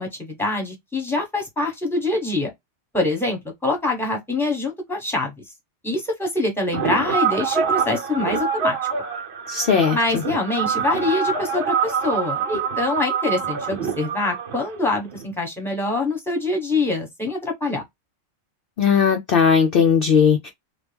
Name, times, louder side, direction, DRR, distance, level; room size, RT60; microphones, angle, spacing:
voice 1, 0.0-2.5 2.9-5.3 5.8-8.8 9.9-17.8, left 2 dB, ahead, 1.1 m, -24 dB
sound 1, 6.7-15.2, right 6 dB, 60° right, 1.0 m, -25 dB
voice 2, 9.5-10.2 18.8-20.5, left 6 dB, 60° left, 0.6 m, -18 dB
3.0 x 2.3 x 3.3 m
omnidirectional pair, 1.3 m